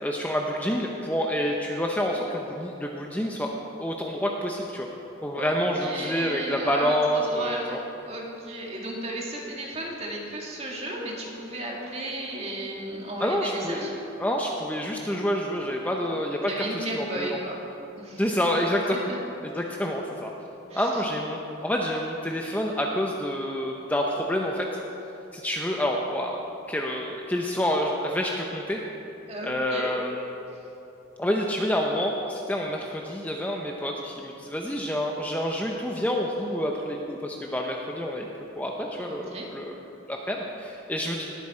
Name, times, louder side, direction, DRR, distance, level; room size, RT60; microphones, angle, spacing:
voice 1, 0.0-3.5 3.8-4.9 5.2-7.8 13.2-13.9 14.2-17.4 18.2-19.0 19.4-20.3 20.7-24.7 25.3-26.4 26.7-28.8 29.4-30.3 31.2-38.3 38.6-39.2 39.5-39.6 40.1-41.3, equal, 10° left, 0 dB, 0.6 m, -28 dB
voice 2, 5.3-13.9 16.0-16.1 16.5-17.6 18.0-18.2 18.9-19.2 20.7-21.0 29.3-30.0 30.5-30.6 39.1-39.5, right 1 dB, 35° right, -2 dB, 2.1 m, -34 dB
19.0 x 8.3 x 4.3 m, 3.0 s
head